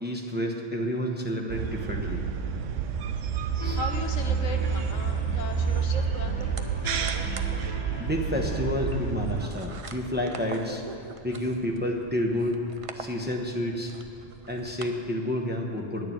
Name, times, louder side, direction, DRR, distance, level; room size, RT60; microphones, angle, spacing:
voice 1, 0.0-2.2 3.6-3.8 8.0-10.8 11.2-12.6 12.9-13.9 14.5-16.1, left 1 dB, 10° right, 0 dB, 0.9 m, -30 dB
sound 1, 1.5-9.4, right 7 dB, 80° right, 1.0 m, -29 dB
voice 2, 3.4-6.6, left 5 dB, 90° left, 5 dB, 1.3 m, -39 dB
sound 2, 3.6-9.1, left 1 dB, 30° left, 0.5 m, -40 dB
sound 3, 5.2-14.9, right 4 dB, 45° right, 0.4 m, -44 dB
10.5 x 6.7 x 9.0 m, 2.7 s
omnidirectional pair, 1.3 m